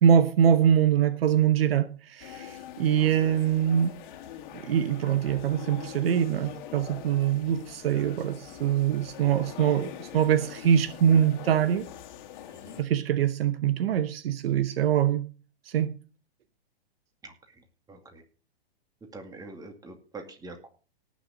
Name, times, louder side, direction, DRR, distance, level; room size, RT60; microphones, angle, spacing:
voice 1, 0.0-3.9 4.5-11.9 12.8-15.3 15.7-15.9, right 9 dB, 65° right, 1.0 m, -24 dB
sound 1, 2.2-12.8, left 10 dB, 45° left, 2.2 m, -43 dB
voice 2, 17.9-18.2 19.1-20.7, right 3 dB, 10° right, 2.3 m, -44 dB
18.0 x 6.3 x 5.1 m
hypercardioid pair, 130°, 32 cm